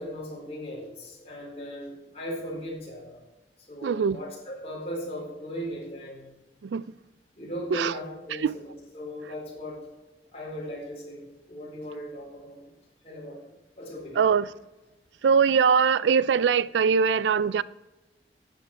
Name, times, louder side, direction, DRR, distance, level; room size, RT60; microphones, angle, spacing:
voice 1, 0.0-3.2 3.7-6.3 7.4-9.8 10.3-12.7 13.0-13.4 13.8-14.2, equal, 35° left, 4.3 m, -37 dB
voice 2, 3.8-4.2 6.6-6.8 7.7-8.0 8.3-8.6 14.2-14.5 15.2-17.6, right 6 dB, 90° right, 0.4 m, -22 dB
12.0 x 9.0 x 4.5 m
head